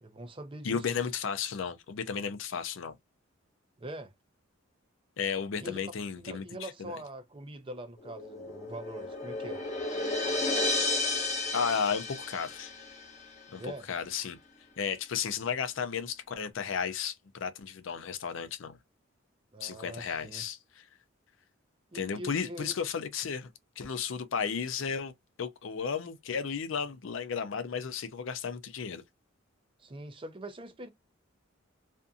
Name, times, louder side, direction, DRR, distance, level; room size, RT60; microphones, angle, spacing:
voice 1, 0.0-1.0 3.8-4.1 5.6-5.8 6.2-9.6 13.6-13.9 19.5-20.4 21.9-22.8 29.8-30.9, right 1 dB, 25° right, 0.5 m, -43 dB
voice 2, 0.6-3.0 5.2-6.9 11.5-12.7 13.5-14.4 14.8-18.8 19.6-20.8 21.9-23.5 23.8-25.1 25.4-29.0, left 6 dB, 65° left, 0.5 m, -34 dB
sound 1, 8.0-13.2, left 2 dB, 35° left, 0.9 m, -32 dB
2.6 x 2.6 x 2.2 m
head